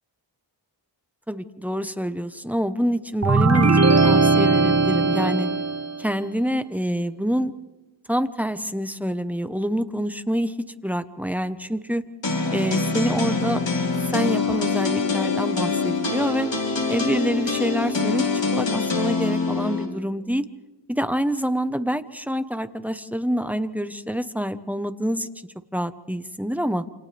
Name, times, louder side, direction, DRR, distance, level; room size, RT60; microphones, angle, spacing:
voice 1, 1.3-3.8 4.0-5.5 6.0-7.5 8.1-10.5 10.8-12.0 12.5-13.6 14.1-16.5 16.9-20.5 20.9-26.8, equal, 5° right, 11 dB, 1.1 m, -26 dB
sound 1, 3.2-6.0, right 3 dB, 35° right, 1.3 m, -18 dB
sound 2, 12.2-19.8, left 4 dB, 70° left, 4.0 m, -24 dB
28.5 x 28.0 x 3.5 m, 1.1 s
wide cardioid pair, 40°, 46 cm